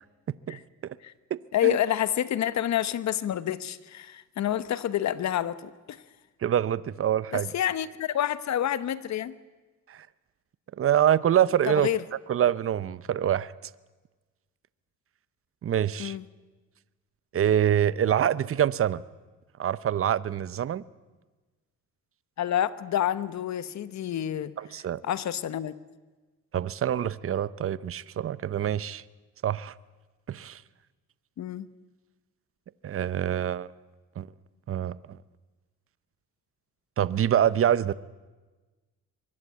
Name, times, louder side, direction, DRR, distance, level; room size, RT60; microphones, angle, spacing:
voice 1, 0.5-1.0 1.3-1.8 6.4-7.5 9.9-10.1 10.8-11.9 12.3-13.5 15.6-16.2 17.3-19.0 19.6-20.8 24.6-25.0 26.5-29.0 29.4-29.7 30.3-30.6 32.8-33.7 34.2-34.3 34.7-35.2 37.0-37.9, right 10 dB, 45° right, 18 dB, 0.8 m, -25 dB
voice 2, 1.5-6.0 7.3-9.3 11.7-12.0 16.0-16.2 22.4-24.5 25.0-25.8 31.4-31.7, left 11 dB, 65° left, 15 dB, 1.2 m, -28 dB
23.5 x 21.0 x 8.4 m, 1.3 s
cardioid pair, 90°, 30 cm